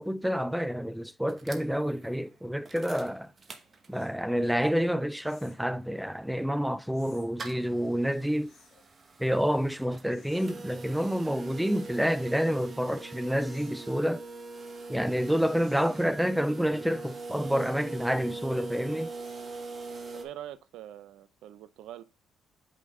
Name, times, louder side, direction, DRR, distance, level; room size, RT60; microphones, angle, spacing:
voice 1, 0.0-3.3 3.9-8.5 9.2-14.2 14.9-19.1, equal, ahead, 0.4 m, -28 dB
sound 1, 1.3-4.3 4.7-4.8 4.9-20.3, right 3 dB, 35° right, 1.1 m, -43 dB
sound 2, 3.9-4.2 5.2-5.7 6.9-7.3 8.4-8.9 10.1-10.5 11.5-11.8 13.5-13.8 15.5-16.1, left 6 dB, 65° left, 2.5 m, -60 dB
voice 2, 20.1-22.0, right 12 dB, 80° right, 0.5 m, -44 dB
5.4 x 5.0 x 3.6 m
cardioid pair, 80°, 0 cm